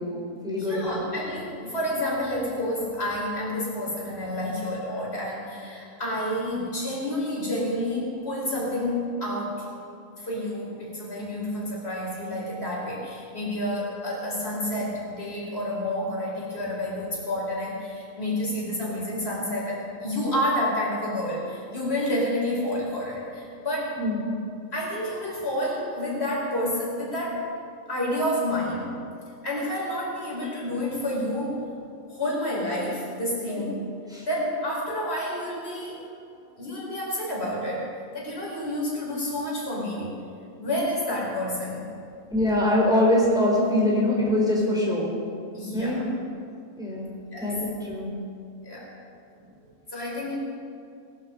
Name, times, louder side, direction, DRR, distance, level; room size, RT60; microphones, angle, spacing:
voice 1, 0.0-1.0 24.0-24.2 33.5-33.7 34.1-34.3 42.3-45.1 45.7-46.1 46.8-47.1 47.4-48.1, left 1 dB, 5° right, -4 dB, 3.5 m, -24 dB
voice 2, 0.6-9.7 10.2-24.0 24.7-27.5 27.9-28.9 29.4-31.6 32.1-33.8 34.2-36.0 36.6-40.1 40.6-41.9 45.5-46.0 47.3-47.5 48.6-48.9 49.6-50.4, left 1 dB, 50° left, -5 dB, 4.7 m, -29 dB
19.0 x 11.5 x 5.2 m, 2.5 s
omnidirectional pair, 1.4 m